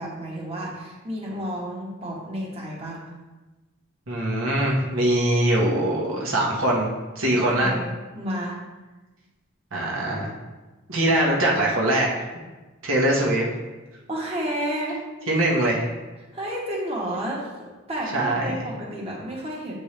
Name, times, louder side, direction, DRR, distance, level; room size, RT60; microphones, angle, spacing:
voice 1, 0.0-3.0 7.4-8.6 14.1-15.0 16.3-17.5 17.9-19.7, right 1 dB, 30° right, -4 dB, 1.3 m, -31 dB
voice 2, 4.1-7.8 9.7-10.3 10.9-12.1 12.8-13.5 15.3-15.9 18.1-18.5, right 1 dB, 75° right, -3 dB, 1.4 m, -22 dB
8.2 x 4.5 x 3.3 m, 1.2 s
head